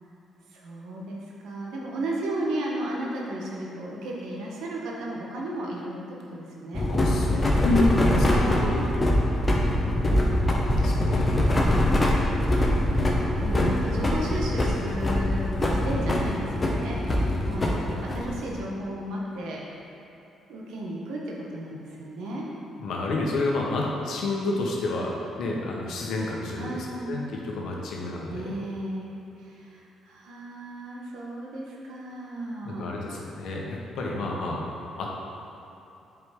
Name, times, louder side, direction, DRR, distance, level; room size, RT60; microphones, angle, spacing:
voice 1, 0.5-5.9 6.3-6.9 8.2-9.0 11.4-12.2 13.0-19.6 20.5-22.5 26.6-27.1 28.3-32.9, right 1 dB, 85° right, -3 dB, 1.2 m, -34 dB
sound 1, 6.7-18.6, left 1 dB, 25° left, 1.0 m, -24 dB
voice 2, 6.9-8.8 9.8-10.4 10.8-11.3 22.8-28.5 32.6-34.6 35.0-35.1, left 2 dB, 75° left, -2 dB, 1.1 m, -29 dB
7.9 x 4.9 x 3.7 m, 3.0 s
cardioid pair, 90°, 0 cm